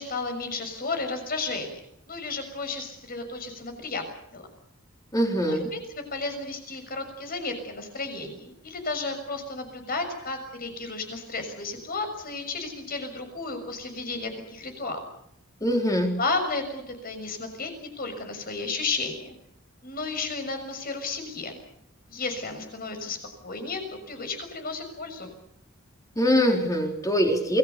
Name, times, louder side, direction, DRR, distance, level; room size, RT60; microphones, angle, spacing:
voice 1, 0.0-1.8 2.1-4.0 4.3-4.5 5.4-15.0 16.1-19.3 19.8-21.6 22.1-25.3, left 3 dB, 45° left, 7 dB, 6.4 m, -33 dB
voice 2, 5.1-5.6 15.6-16.2 26.2-27.6, equal, 15° left, 2 dB, 4.1 m, -23 dB
28.5 x 21.0 x 6.9 m, 0.74 s
head